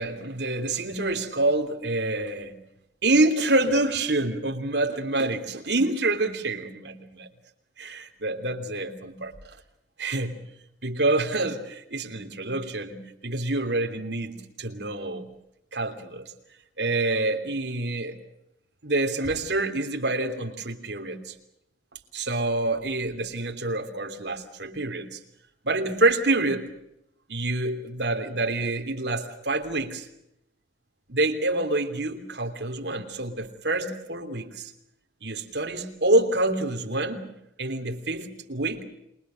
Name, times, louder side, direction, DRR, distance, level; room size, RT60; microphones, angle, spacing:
voice 1, 0.0-2.5 3.0-7.3 7.8-9.3 10.0-10.4 10.8-15.2 15.7-16.3 16.8-18.2 18.8-21.3 22.1-25.2 25.6-26.7 27.3-30.1 31.1-34.7 35.2-37.3 37.6-38.8, right 2 dB, 65° right, 4 dB, 3.2 m, -27 dB
27.5 x 22.0 x 6.4 m, 0.80 s
head